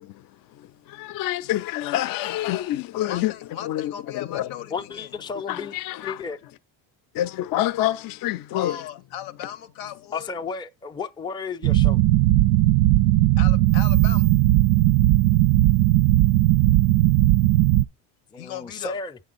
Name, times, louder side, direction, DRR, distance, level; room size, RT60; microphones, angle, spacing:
voice 1, 1.0-3.3 3.7-3.9 4.3-4.5 5.5-6.1 7.2-8.8, left 14 dB, 60° left, 0.6 m, -26 dB
voice 2, 3.0-5.1 8.5-10.3 13.4-14.3 18.4-19.0, left 11 dB, 90° left, 0.9 m, -37 dB
voice 3, 4.7-5.8 6.0-6.4 10.1-12.0 18.3-19.2, left 5 dB, 10° left, 0.4 m, -33 dB
sound 1, 11.6-17.8, right 16 dB, 85° right, 0.5 m, -17 dB
7.6 x 6.5 x 3.9 m
cardioid pair, 95°, 40 cm